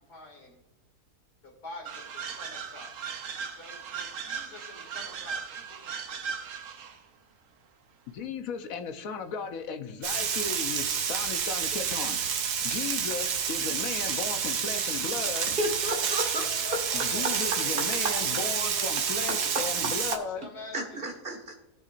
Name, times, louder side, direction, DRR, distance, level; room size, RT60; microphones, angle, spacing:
voice 1, 0.1-0.6 1.6-2.9 3.6-6.1 16.7-18.9 19.4-19.6 20.2-21.2, left 2 dB, 90° left, 3.0 m, -46 dB
sound 1, 1.9-7.0, right 6 dB, 60° right, 1.1 m, -38 dB
voice 2, 8.1-12.2 12.6-15.5 16.9-20.4, left 6 dB, 65° left, 1.2 m, -36 dB
Frying (food), 10.0-20.2, right 7 dB, 90° right, 1.4 m, -29 dB
voice 3, 15.6-16.8 19.3-19.5 20.7-21.5, equal, 35° right, 1.9 m, -32 dB
19.0 x 6.5 x 2.5 m
omnidirectional pair, 1.6 m